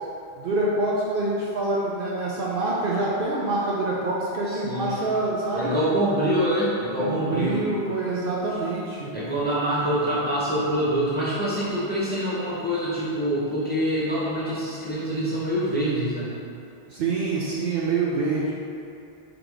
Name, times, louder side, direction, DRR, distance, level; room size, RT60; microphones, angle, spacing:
voice 1, 0.4-5.7 7.0-9.1 16.9-18.5, right 2 dB, 60° right, -5 dB, 0.7 m, -26 dB
voice 2, 4.5-5.1 5.5-7.6 9.1-16.3, equal, 10° left, -10 dB, 0.8 m, -25 dB
3.8 x 3.4 x 3.4 m, 2.7 s
omnidirectional pair, 1.1 m